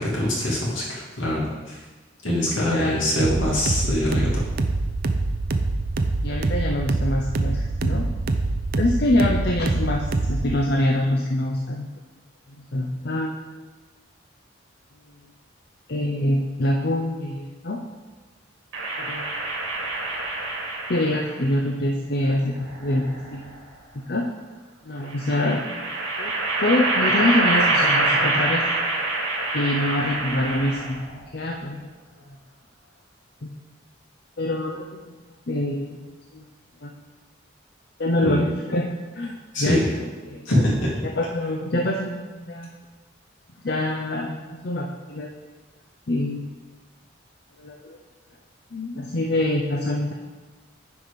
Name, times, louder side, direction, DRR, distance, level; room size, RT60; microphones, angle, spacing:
voice 1, 0.0-1.8 2.2-4.4 38.2-38.4 39.5-39.9 40.4-41.0, left 1 dB, 75° left, -4 dB, 2.7 m, -23 dB
voice 2, 2.6-3.0 6.2-8.1 8.8-11.9 12.5-13.4 15.9-17.8 19.0-19.3 20.9-23.6 24.1-24.2 24.8-25.7 26.2-26.3 26.6-28.6 29.5-31.9 32.3-32.4 33.4-33.5 34.4-35.2 35.5-35.9 36.3-36.5 36.8-37.0 38.0-38.9 39.1-40.0 40.3-40.5 41.2-42.7 43.6-45.3 46.1-46.5 47.6-48.0 48.7-50.1, left 1 dB, 50° left, 1 dB, 0.7 m, -25 dB
sound 1, 3.2-10.6, right 2 dB, 50° right, 0.5 m, -25 dB
sound 2, 18.7-21.4 22.5-23.5 25.1-31.1, right 2 dB, 90° right, 2.2 m, -25 dB
9.6 x 4.9 x 5.3 m, 1.2 s
head